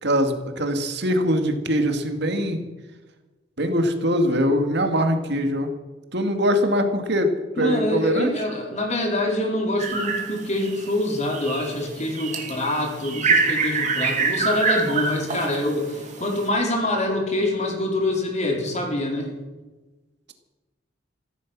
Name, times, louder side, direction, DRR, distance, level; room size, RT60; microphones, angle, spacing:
voice 1, 0.0-2.6 3.6-5.7 6.1-7.3 7.6-8.3, equal, 65° right, 6 dB, 2.2 m, -22 dB
voice 2, 7.6-19.3, left 1 dB, 40° left, 1 dB, 4.3 m, -25 dB
sound 1, 9.8-10.9 11.3-16.5, right 4 dB, 40° right, 2.5 m, -25 dB
15.5 x 14.0 x 6.2 m, 1.2 s
head